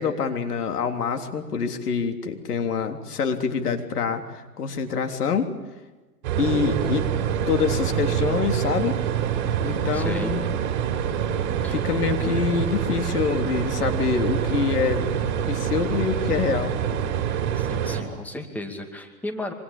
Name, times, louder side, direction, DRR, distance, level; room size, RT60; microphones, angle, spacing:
voice 1, 0.0-5.5 6.4-7.1 7.5-9.0 9.6-10.4 11.7-15.0 15.5-16.7, left 6 dB, 75° left, 6 dB, 3.5 m, -25 dB
sound 1, 6.2-18.0, right 9 dB, 45° right, 5.5 m, -26 dB
voice 2, 9.9-10.3 11.6-11.8 17.6-19.5, left 1 dB, 5° left, 5 dB, 2.3 m, -34 dB
26.0 x 25.0 x 8.6 m, 1.2 s
hypercardioid pair, 135°, 47 cm